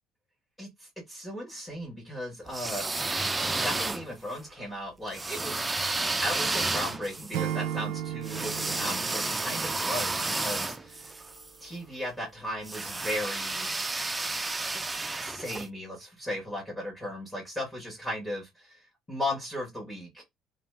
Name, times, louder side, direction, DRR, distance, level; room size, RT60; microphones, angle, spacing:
voice 1, 0.6-2.8 3.6-5.6 6.2-11.1 11.6-13.7 15.2-18.8 19.1-20.2, left 1 dB, 15° left, 1.4 m, -36 dB
sound 1, 2.5-4.3 5.1-11.5 12.6-15.7, right 3 dB, 15° right, 0.3 m, -31 dB
Acoustic guitar / Strum, 7.3-10.4, right 10 dB, 85° right, 0.5 m, -35 dB
2.8 x 2.3 x 3.3 m
cardioid pair, 105°, 0 cm